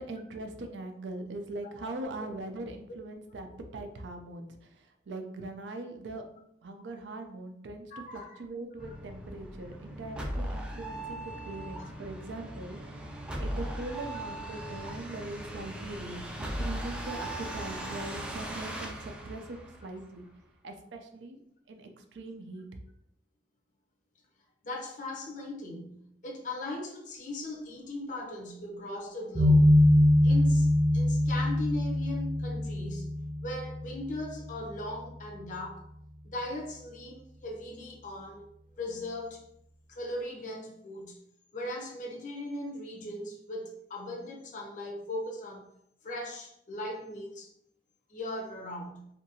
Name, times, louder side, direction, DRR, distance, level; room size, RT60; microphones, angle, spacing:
voice 1, 0.0-3.5 3.7-4.6 5.1-6.2 6.6-7.8 8.1-12.8 13.4-19.4 19.8-20.2 20.6-21.4 21.7-22.7, right 2 dB, 85° right, 0.4 m, -41 dB
voice 2, 7.9-8.4 8.8-9.0 11.8-11.9 15.1-15.2 17.0-17.1 24.6-29.8 30.2-33.1 33.4-35.8 36.2-38.4 38.8-39.4 39.9-41.2 41.5-45.6 46.0-47.5 48.1-49.1, left 1 dB, 45° left, 0.6 m, -39 dB
sound 1, 8.8-20.3, right 1 dB, 5° right, 0.3 m, -38 dB
sound 2, 29.3-35.1, left 1 dB, 35° right, 0.8 m, -24 dB
2.7 x 2.5 x 2.7 m
head